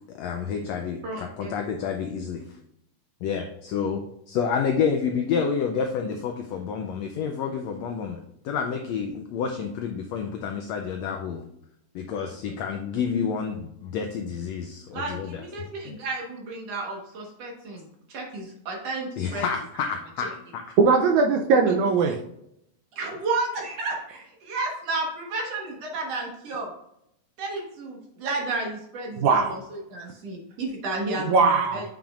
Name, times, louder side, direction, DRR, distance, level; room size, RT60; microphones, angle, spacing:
voice 1, 0.1-2.4 3.2-8.2 8.4-11.4 11.9-16.0 19.2-20.6, left 6 dB, 85° left, 4 dB, 1.5 m, -29 dB
voice 2, 1.0-1.6 14.9-19.5 21.7-21.8 22.9-26.7 27.4-31.9, right 3 dB, 55° right, 0 dB, 2.2 m, -32 dB
voice 3, 20.8-22.2 29.2-29.6 31.3-31.8, right 4 dB, 75° right, 3 dB, 1.9 m, -20 dB
8.6 x 5.8 x 2.5 m, 0.77 s
omnidirectional pair, 3.8 m